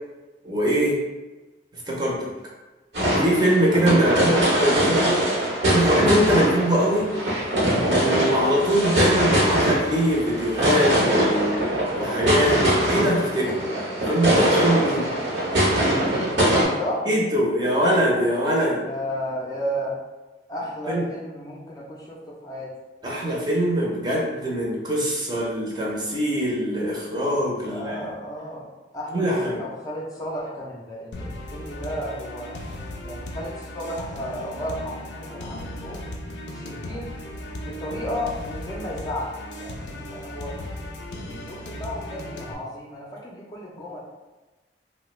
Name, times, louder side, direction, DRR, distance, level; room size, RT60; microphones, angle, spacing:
voice 1, 0.4-1.0 1.7-2.3 3.2-5.2 5.6-7.1 7.8-11.5 11.9-13.7 14.1-15.1 17.0-18.8 20.9-21.0 23.0-28.0 29.1-29.6, equal, 25° right, -3 dB, 0.6 m, -22 dB
sound 1, 2.9-16.6, right 1 dB, 75° right, 1.0 m, -22 dB
voice 2, 4.1-4.9 14.9-15.0 16.1-16.4 16.6-17.1 18.7-20.0 20.5-22.7 27.6-28.7 28.9-32.6 33.0-36.0 36.5-37.1 37.6-40.9 41.2-44.0, equal, 20° left, -4 dB, 0.4 m, -33 dB
sound 2, 31.1-42.5, left 1 dB, 80° left, 0.4 m, -36 dB
3.2 x 2.1 x 3.1 m, 1.2 s
head